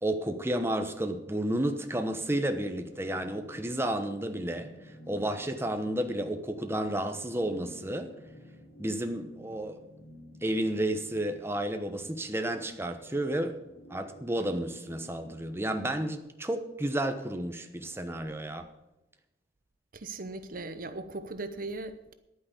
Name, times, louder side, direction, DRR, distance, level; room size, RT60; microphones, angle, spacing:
voice 1, 0.0-8.1 8.8-9.8 10.4-13.6 13.9-18.7, right 1 dB, 15° right, 1.0 m, -32 dB
sound 1, 2.4-16.2, equal, 60° left, 2.2 m, -53 dB
voice 2, 19.9-22.1, right 2 dB, 50° right, 0.9 m, -38 dB
11.0 x 9.4 x 8.2 m
head